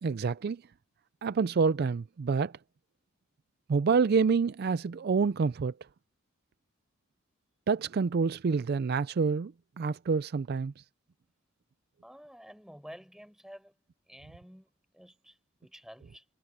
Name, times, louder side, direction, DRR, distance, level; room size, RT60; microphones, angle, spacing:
voice 1, 0.0-0.6 1.2-2.5 3.7-5.7 7.7-10.7, right 5 dB, 50° right, 0.4 m, -27 dB
voice 2, 12.0-13.8 14.1-16.3, equal, ahead, 5.9 m, -51 dB
head